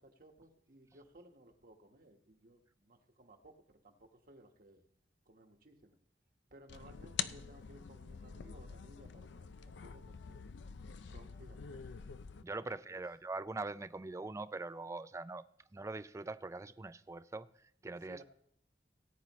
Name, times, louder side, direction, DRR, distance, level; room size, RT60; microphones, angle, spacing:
voice 1, 0.0-4.9 5.2-6.0 6.5-10.4 11.0-12.0 12.5-13.0 17.9-18.2, right 1 dB, 55° right, 1.3 m, -60 dB
sound 1, 6.7-12.4, left 7 dB, 85° left, 0.5 m, -45 dB
voice 2, 12.4-15.4 15.7-18.2, right 3 dB, 15° right, 0.4 m, -43 dB
18.0 x 9.6 x 3.1 m
head